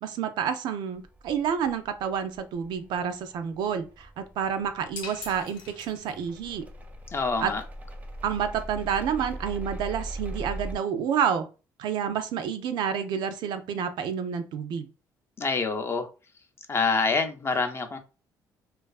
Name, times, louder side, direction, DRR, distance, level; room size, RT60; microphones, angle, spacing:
voice 1, 0.0-6.7 7.4-7.5 8.2-11.5 11.8-14.9, right 7 dB, 70° right, 0.4 m, -29 dB
sound 1, 0.9-10.8, right 1 dB, 20° right, 0.5 m, -41 dB
sound 2, 5.0-6.4, left 5 dB, 80° left, 0.6 m, -42 dB
voice 2, 7.1-7.6 15.4-16.1 16.7-18.0, left 4 dB, 35° left, 0.5 m, -26 dB
2.4 x 2.3 x 2.3 m
cardioid pair, 90°, 8 cm